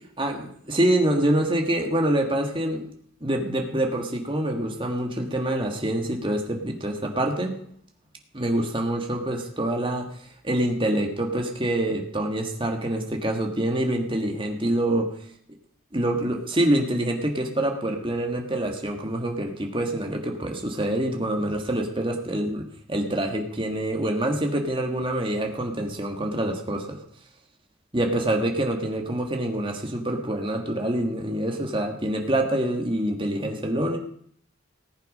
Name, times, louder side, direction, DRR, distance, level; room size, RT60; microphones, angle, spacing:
voice 1, 0.2-2.9 3.2-7.6 8.3-15.1 15.9-27.0 27.9-34.0, right 1 dB, 25° right, 3 dB, 1.7 m, -26 dB
18.5 x 8.3 x 5.4 m, 0.64 s
head